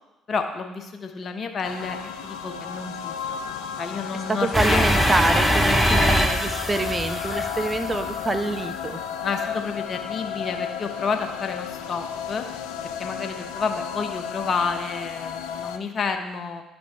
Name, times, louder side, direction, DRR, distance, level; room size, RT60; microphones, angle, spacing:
voice 1, 0.3-4.9 5.2-5.3 5.7-6.0 9.2-12.5 13.0-16.6, left 5 dB, 40° left, 5 dB, 0.8 m, -30 dB
sound 1, 1.6-15.8, left 8 dB, 65° left, 0.4 m, -33 dB
voice 2, 4.3-9.0, right 2 dB, 25° right, 9 dB, 0.5 m, -26 dB
sound 2, 4.5-8.4, equal, ahead, 0.8 m, -22 dB
11.5 x 4.0 x 3.4 m, 1.0 s
figure-of-eight pair, 50°, 0 cm